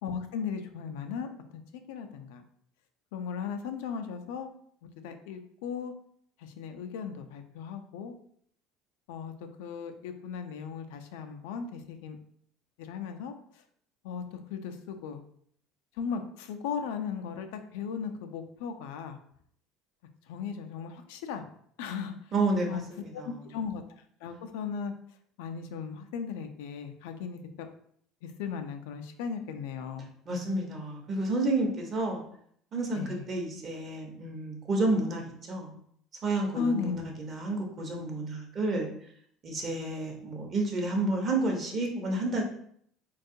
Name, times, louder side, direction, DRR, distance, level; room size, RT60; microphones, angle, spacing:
voice 1, 0.0-2.4 3.1-4.5 5.0-5.9 6.4-8.1 9.1-9.3 9.6-12.2 12.8-13.3 14.0-15.2 16.0-19.2 20.3-21.5 21.8-22.1 22.7-22.8 23.1-23.8 24.2-24.9 25.4-27.7 28.2-30.1 32.9-33.2 36.6-37.1, left 6 dB, 90° left, 7 dB, 0.3 m, -36 dB
voice 2, 22.3-23.3 30.3-32.2 32.7-35.7 36.2-38.9 39.4-42.4, right 2 dB, 40° right, 1 dB, 0.8 m, -30 dB
3.5 x 2.3 x 2.6 m, 0.64 s
cardioid pair, 120°, 0 cm